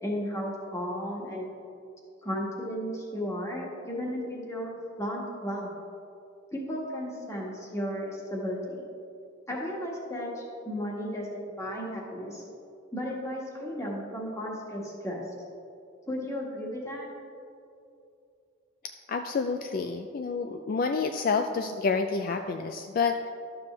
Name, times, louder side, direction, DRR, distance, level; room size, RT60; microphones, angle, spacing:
voice 1, 0.0-1.5 2.2-5.7 6.5-8.9 9.5-12.4 12.9-15.2 16.1-17.1, equal, 15° left, -2 dB, 1.4 m, -34 dB
voice 2, 19.1-23.3, left 4 dB, 50° left, 6 dB, 0.3 m, -29 dB
12.0 x 7.0 x 3.2 m, 2.6 s
head